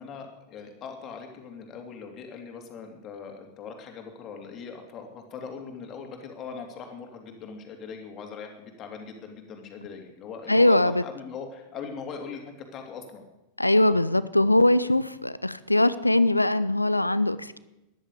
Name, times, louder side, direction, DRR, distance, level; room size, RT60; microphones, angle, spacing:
voice 1, 0.0-13.3, left 5 dB, 30° left, 3 dB, 3.0 m, -40 dB
voice 2, 10.5-11.0 13.6-17.6, left 1 dB, 85° left, 16 dB, 0.6 m, -21 dB
14.0 x 11.0 x 8.6 m, 0.97 s
figure-of-eight pair, 90°, 0 cm